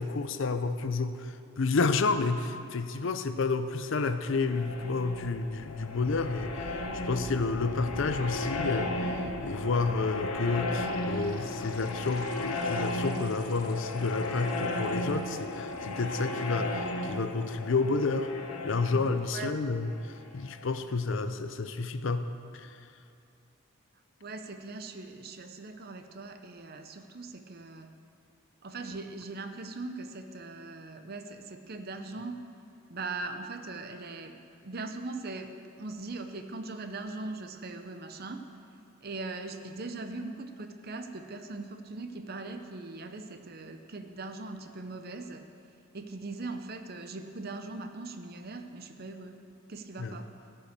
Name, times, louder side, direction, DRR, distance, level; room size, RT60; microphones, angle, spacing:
voice 1, 0.0-18.3 18.6-19.9 20.3-22.3 22.5-22.7 50.0-50.1, left 4 dB, 60° left, 10 dB, 0.5 m, -30 dB
sound 1, 4.1-20.7, left 2 dB, 85° left, 1.0 m, -35 dB
voice 2, 24.2-27.9 28.6-32.4 32.9-38.4 39.0-45.4 45.9-49.4 49.7-50.3, right 3 dB, 45° right, 7 dB, 0.6 m, -40 dB
14.0 x 5.7 x 6.6 m, 2.5 s
head